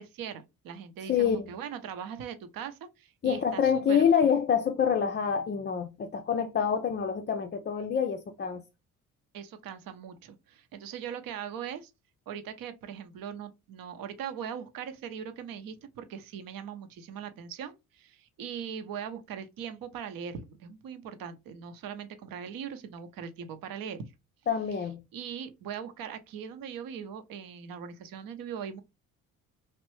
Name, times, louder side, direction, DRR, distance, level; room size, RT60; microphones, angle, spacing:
voice 1, 0.0-4.1 9.3-11.9 12.3-24.0 25.1-28.8, right 8 dB, 55° right, 0.8 m, -40 dB
voice 2, 1.1-1.5 3.2-8.6 24.5-25.0, left 7 dB, 25° left, 0.4 m, -26 dB
3.1 x 2.5 x 3.1 m
hypercardioid pair, 50°, 42 cm